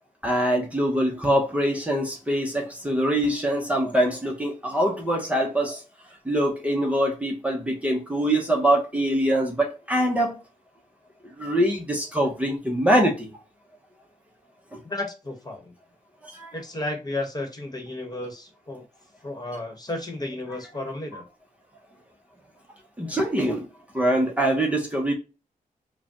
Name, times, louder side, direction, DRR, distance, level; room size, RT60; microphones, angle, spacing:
voice 1, 0.2-5.8 6.3-10.4 11.4-13.3 14.7-14.8 16.3-16.5 21.1-21.2 23.0-23.6 23.9-25.1, right 1 dB, 10° right, 0.9 m, -23 dB
voice 2, 14.8-15.7 16.5-18.8 19.2-21.2, left 2 dB, 25° left, 1.3 m, -33 dB
5.0 x 2.3 x 2.9 m
cardioid pair, 95°, 14 cm